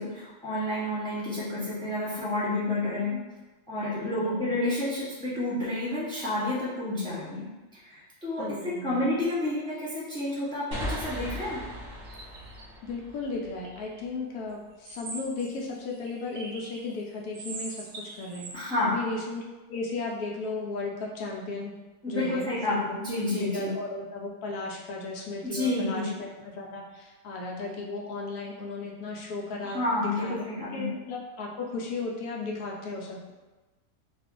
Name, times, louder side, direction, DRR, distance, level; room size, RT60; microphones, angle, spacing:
voice 1, 0.0-3.2 3.7-11.6 18.5-19.0 22.0-23.7 25.4-26.1 29.6-30.9, left 1 dB, 5° left, -8 dB, 0.4 m, -30 dB
voice 2, 4.0-4.5 8.4-9.1 12.8-17.8 18.2-19.4 19.7-21.7 22.1-30.5 30.7-33.3, left 3 dB, 75° left, -1 dB, 1.1 m, -35 dB
sound 1, 10.7-14.2, equal, 20° right, 0.9 m, -38 dB
sound 2, 11.9-12.6 13.6-14.0 14.8-16.9 17.3-18.5, right 3 dB, 70° right, 0.7 m, -42 dB
2.5 x 2.4 x 3.6 m, 1.2 s
omnidirectional pair, 1.7 m